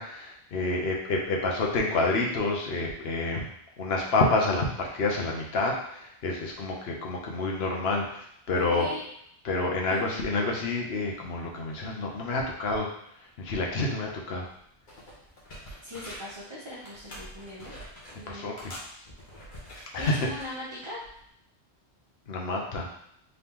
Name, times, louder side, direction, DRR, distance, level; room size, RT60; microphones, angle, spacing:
voice 1, 0.0-3.5 3.8-8.9 9.4-12.9 13.4-14.5 18.3-18.7 19.9-20.3 22.3-22.9, left 2 dB, 70° left, -1 dB, 1.0 m, -28 dB
voice 2, 8.5-9.0 9.9-10.0 15.4-17.7 18.2-18.5 19.7-21.0, left 1 dB, 30° right, -7 dB, 0.8 m, -40 dB
sound 1, 14.5-14.6 14.9-16.4 16.8-18.2 18.6-20.5 21.0-21.2, equal, 50° left, 1.2 m, -45 dB
3.9 x 2.9 x 3.5 m, 0.71 s
omnidirectional pair, 1.1 m